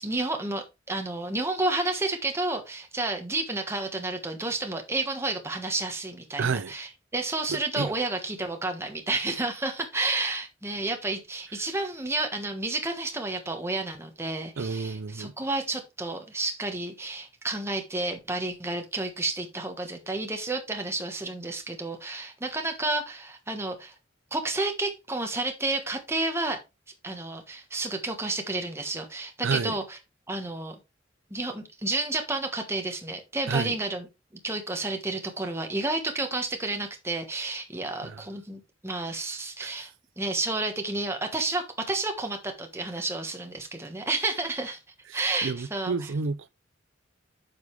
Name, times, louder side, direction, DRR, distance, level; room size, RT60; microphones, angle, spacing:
voice 1, 0.0-23.9 24.3-26.6 27.0-30.0 30.3-30.8 31.3-34.1 34.4-39.9 40.2-44.8 45.1-45.9, right 2 dB, 15° right, 1.3 m, -31 dB
voice 2, 6.4-6.7 7.5-7.9 14.6-15.3 29.4-29.8 33.5-33.8 38.0-38.2 39.6-39.7 45.1-46.5, right 5 dB, 75° right, 0.5 m, -30 dB
9.4 x 5.3 x 3.3 m
head